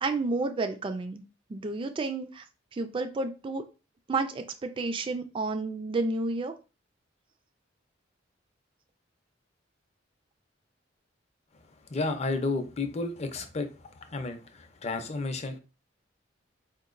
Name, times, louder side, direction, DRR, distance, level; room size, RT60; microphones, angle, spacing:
voice 1, 0.0-1.2 1.5-2.4 2.7-3.6 4.1-6.5, right 3 dB, 25° right, 7 dB, 0.3 m, -31 dB
voice 2, 11.9-13.7 14.0-15.6, left 3 dB, 35° left, 7 dB, 0.5 m, -32 dB
4.4 x 2.9 x 2.5 m, 0.31 s
head